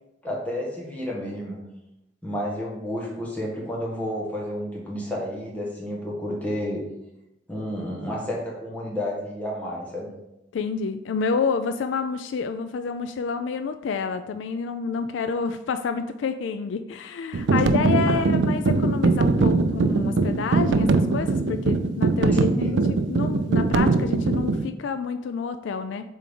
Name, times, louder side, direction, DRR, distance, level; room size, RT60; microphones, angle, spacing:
voice 1, 0.2-1.6 2.2-6.8 7.5-10.1 22.6-22.8, equal, 10° left, -4 dB, 1.5 m, -31 dB
voice 2, 10.5-26.1, left 5 dB, 70° left, 10 dB, 0.3 m, -29 dB
sound 1, 17.3-24.7, right 3 dB, 70° right, 0.4 m, -21 dB
7.5 x 3.5 x 3.7 m, 0.88 s
head